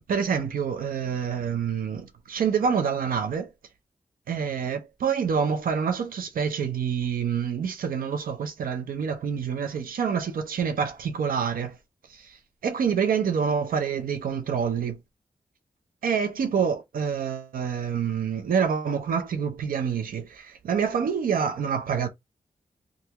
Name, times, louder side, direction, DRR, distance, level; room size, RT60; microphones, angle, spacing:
voice 1, 0.1-3.5 4.3-11.8 12.0-15.0 16.0-22.1, right 7 dB, 80° right, 0.6 m, -27 dB
2.8 x 2.5 x 3.4 m
cardioid pair, 45°, 15 cm